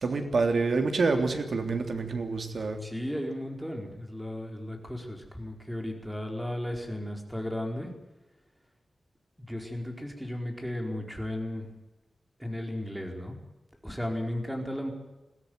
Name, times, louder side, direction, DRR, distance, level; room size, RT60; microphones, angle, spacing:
voice 1, 0.0-2.8, right 4 dB, 70° right, 6 dB, 3.3 m, -27 dB
voice 2, 2.8-7.9 9.4-11.7 12.4-13.3 13.8-14.9, left 1 dB, ahead, 3 dB, 4.7 m, -35 dB
22.0 x 16.0 x 9.5 m, 1.1 s
wide cardioid pair, 120°, 0 cm